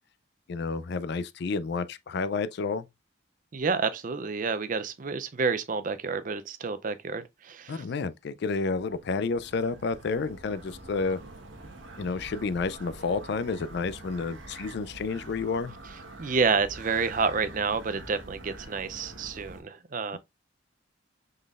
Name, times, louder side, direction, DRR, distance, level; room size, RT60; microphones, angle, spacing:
voice 1, 0.5-2.9 7.7-11.2 12.0-15.7 20.1-20.2, left 4 dB, 55° left, 0.4 m, -30 dB
voice 2, 3.5-7.8 16.2-20.2, right 5 dB, 40° right, 0.5 m, -29 dB
sound 1, 8.6-19.6, right 2 dB, 75° right, 1.2 m, -45 dB
5.4 x 3.9 x 2.4 m
head